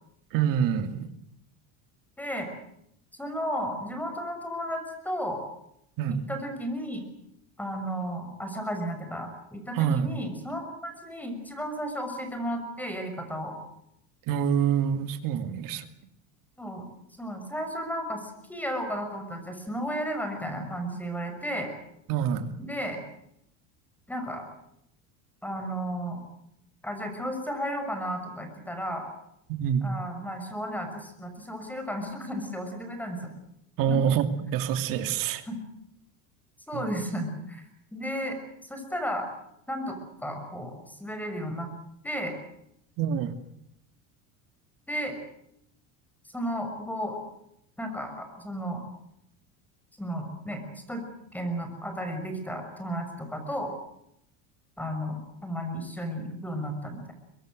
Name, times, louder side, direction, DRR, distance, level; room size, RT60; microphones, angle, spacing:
voice 1, 0.3-1.1 6.0-6.2 9.7-10.2 14.3-15.9 22.1-22.5 29.5-29.9 33.8-35.5 36.7-36.9 43.0-43.3, right 8 dB, 60° right, 8 dB, 2.7 m, -26 dB
voice 2, 2.2-2.5 3.2-5.4 6.3-7.0 7.6-13.5 16.6-16.9 17.2-21.7 22.6-23.0 24.1-24.4 25.4-26.2 26.8-29.1 29.8-33.3 33.9-34.1 35.5-35.6 36.7-37.6 37.9-39.3 39.7-41.7 42.0-42.3 44.9-45.2 46.3-47.2 47.8-48.8 50.0-50.6 50.9-51.0 51.3-53.7 54.8-57.1, equal, 5° left, 6 dB, 6.2 m, -33 dB
24.0 x 21.5 x 7.9 m, 0.77 s
cardioid pair, 130°, 38 cm